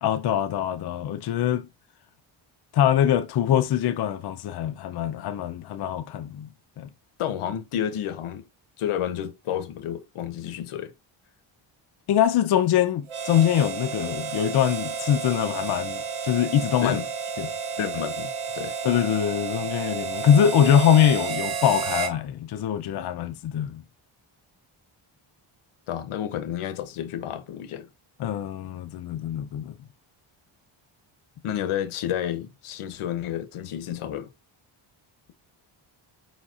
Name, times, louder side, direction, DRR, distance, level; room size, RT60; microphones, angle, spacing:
voice 1, 0.0-1.6 2.7-6.5 6.8-6.9 12.1-17.0 17.4-17.5 18.8-23.8 28.2-29.7, left 10 dB, 55° left, 0.5 m, -23 dB
voice 2, 7.2-8.4 8.8-10.9 16.8-17.1 17.8-18.7 25.9-27.9 31.4-34.3, left 10 dB, 85° left, 0.8 m, -30 dB
Harmonica, 13.1-22.2, right 6 dB, 75° right, 0.9 m, -31 dB
4.9 x 4.0 x 2.4 m
cardioid pair, 95°, 50 cm